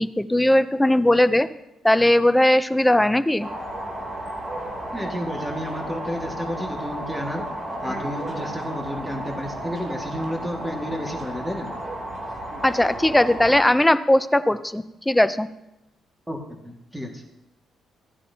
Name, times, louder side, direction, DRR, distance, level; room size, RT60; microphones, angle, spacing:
voice 1, 0.0-1.5 1.8-3.5 12.6-15.5, left 1 dB, 10° left, 13 dB, 0.5 m, -19 dB
sound 1, 3.4-13.6, right 1 dB, 35° right, 2.8 m, -33 dB
voice 2, 4.9-7.5 7.8-11.7 16.3-17.2, equal, 10° right, 1 dB, 2.0 m, -31 dB
14.5 x 9.8 x 2.8 m, 0.90 s
cardioid pair, 90°, 0 cm